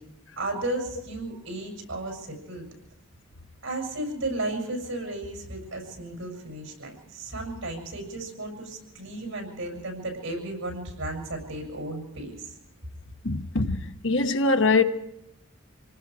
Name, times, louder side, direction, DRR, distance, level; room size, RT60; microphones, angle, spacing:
voice 1, 0.4-2.7 3.6-12.5, right 2 dB, 70° right, 7.2 m, -34 dB
voice 2, 13.2-14.8, left 3 dB, 60° left, 1.2 m, -23 dB
27.5 x 19.0 x 4.9 m
head